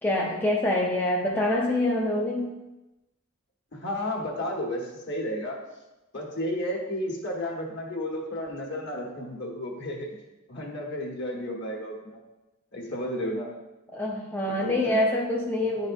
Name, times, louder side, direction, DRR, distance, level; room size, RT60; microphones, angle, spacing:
voice 1, 0.0-2.6 13.9-15.9, left 1 dB, 10° left, -2 dB, 0.5 m, -26 dB
voice 2, 3.7-5.6 6.1-10.1 10.5-12.2 12.7-13.5 14.4-15.1 15.6-15.7, left 1 dB, 55° left, -1 dB, 1.4 m, -32 dB
10.5 x 4.1 x 2.6 m, 1.0 s
head